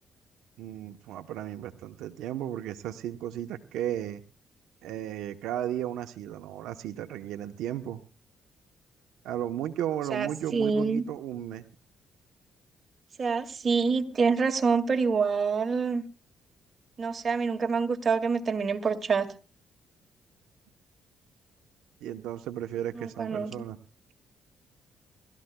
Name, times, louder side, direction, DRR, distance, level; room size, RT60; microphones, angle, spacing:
voice 1, 0.6-4.2 4.8-8.0 9.2-11.6 22.0-23.8, right 11 dB, 90° right, 0.8 m, -34 dB
voice 2, 10.1-11.0 13.2-16.0 17.0-19.3 23.0-23.5, right 5 dB, 40° right, 2.0 m, -26 dB
29.5 x 13.5 x 2.2 m
cardioid pair, 90°, 0 cm